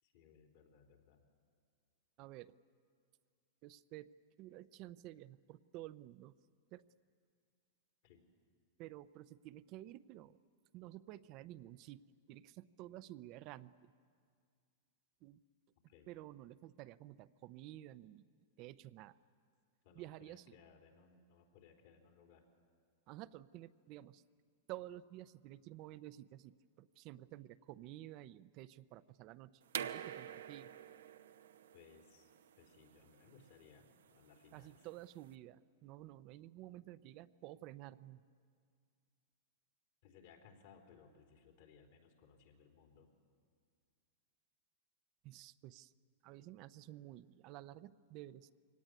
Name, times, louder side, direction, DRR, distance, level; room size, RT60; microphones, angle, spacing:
voice 1, 0.0-1.2 8.0-8.2 15.9-16.1 19.8-22.5 31.7-32.3 32.6-34.9 40.0-43.1, left 6 dB, 65° left, 2 dB, 4.0 m, -63 dB
voice 2, 2.2-2.5 3.6-4.1 4.4-6.3 6.7-6.8 8.8-10.4 10.7-13.9 15.2-15.4 16.1-18.3 18.6-19.2 20.0-20.4 23.1-24.2 24.7-30.7 34.5-38.2 45.2-45.9 46.2-48.5, right 15 dB, 45° right, 13 dB, 0.6 m, -52 dB
sound 1, 29.7-35.3, right 9 dB, 85° right, 0.9 m, -47 dB
23.0 x 18.0 x 9.5 m, 2.1 s
hypercardioid pair, 125°, 0 cm